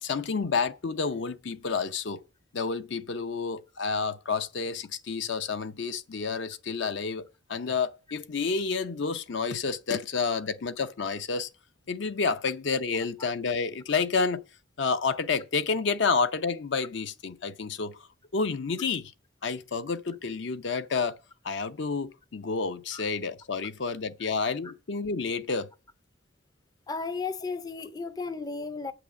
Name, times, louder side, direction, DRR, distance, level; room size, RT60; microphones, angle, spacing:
voice 1, 0.0-2.2 2.5-7.2 7.5-11.5 11.9-14.4 14.8-18.0 18.3-19.1 19.4-21.2 21.4-25.7, left 4 dB, 65° left, 0.6 m, -29 dB
voice 2, 26.9-28.9, left 4 dB, 20° left, 0.5 m, -34 dB
8.6 x 5.9 x 8.1 m
head